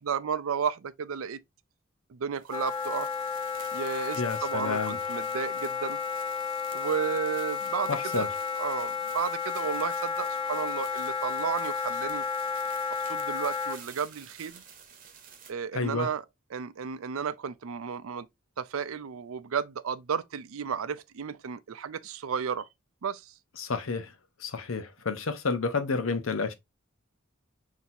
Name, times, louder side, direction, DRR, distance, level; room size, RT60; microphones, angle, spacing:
voice 1, 0.0-1.4 2.1-3.1 3.7-6.0 6.7-8.3 8.6-12.2 13.0-14.6 15.5-16.2 16.5-18.3 18.6-22.7 23.0-23.3, right 7 dB, 90° right, 0.5 m, -33 dB
sound 1, 2.4-15.5, right 7 dB, 40° right, 1.0 m, -50 dB
Wind instrument woodwind instrument, 2.5-13.8, left 6 dB, 25° left, 0.5 m, -32 dB
voice 2, 4.1-5.0 7.9-8.3 15.7-16.1 23.6-24.1 24.4-26.5, left 4 dB, 80° left, 0.8 m, -30 dB
5.8 x 2.8 x 2.7 m
head